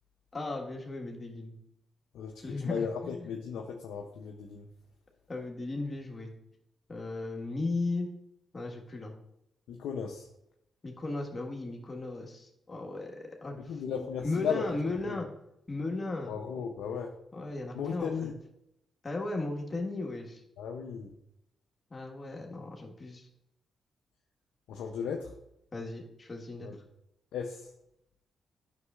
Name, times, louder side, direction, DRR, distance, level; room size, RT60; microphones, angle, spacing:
voice 1, 0.3-1.6 2.4-2.9 5.3-6.3 6.9-8.1 8.5-9.2 10.8-15.3 15.7-16.3 17.3-18.3 19.0-20.4 21.9-23.3 25.7-26.7, left 2 dB, 40° left, 0 dB, 1.5 m, -36 dB
voice 2, 2.1-4.7 9.7-10.3 13.6-14.8 15.1-15.2 16.3-17.1 17.7-18.3 20.6-21.1 24.7-25.3 26.6-26.8 27.3-27.7, left 7 dB, 80° left, 1 dB, 0.6 m, -36 dB
9.5 x 6.5 x 2.4 m, 0.81 s
supercardioid pair, 50°, 0 cm